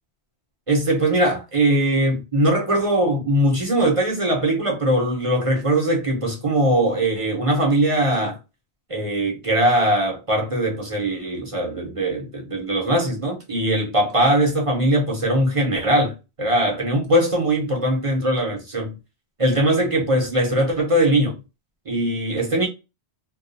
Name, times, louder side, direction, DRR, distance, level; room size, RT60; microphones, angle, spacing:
voice 1, 0.7-8.4 8.9-16.1 16.4-18.9 19.4-21.3 21.9-22.7, right 1 dB, 35° right, 0.7 m, -21 dB
2.3 x 2.1 x 2.5 m
omnidirectional pair, 1.1 m